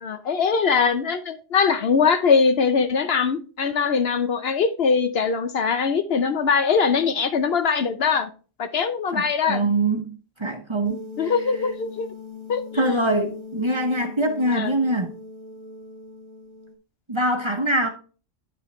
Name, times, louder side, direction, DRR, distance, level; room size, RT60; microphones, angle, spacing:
voice 1, 0.0-8.3 8.6-9.7 11.2-12.1 12.5-13.0 14.5-14.7, left 5 dB, 60° left, 0.8 m, -22 dB
voice 2, 9.1-11.3 12.7-15.2 17.1-17.9, right 1 dB, 25° right, 1.0 m, -24 dB
sound 1, 10.8-16.7, left 2 dB, 25° left, 1.2 m, -39 dB
9.2 x 5.6 x 3.1 m
omnidirectional pair, 1.2 m